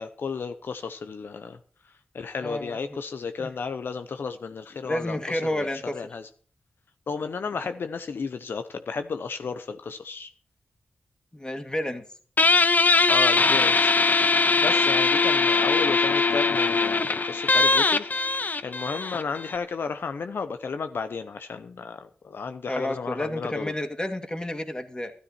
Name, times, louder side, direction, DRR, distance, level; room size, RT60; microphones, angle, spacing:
voice 1, 0.0-1.6 2.1-6.3 7.1-10.3 13.0-18.1 18.6-23.8, left 5 dB, 80° left, 9 dB, 0.8 m, -33 dB
voice 2, 2.4-3.0 3.4-3.5 4.8-5.9 11.3-12.1 22.7-25.1, left 1 dB, 20° left, 6 dB, 2.3 m, -30 dB
Guitar, 12.4-19.6, left 3 dB, 50° left, 0.8 m, -21 dB
13.0 x 12.5 x 4.4 m, 0.43 s
cardioid pair, 50°, 4 cm